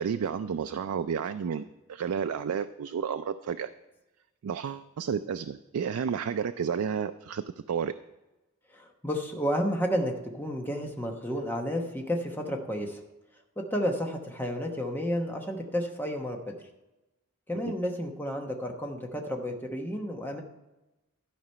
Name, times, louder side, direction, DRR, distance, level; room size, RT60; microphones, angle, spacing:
voice 1, 0.0-3.7 4.4-7.4 7.7-7.9 17.6-17.7, right 7 dB, 85° right, 9 dB, 0.4 m, -31 dB
voice 2, 8.7-13.0 13.6-16.5 17.5-20.4, equal, 10° left, 2 dB, 1.0 m, -31 dB
12.5 x 5.0 x 5.5 m, 1.0 s
head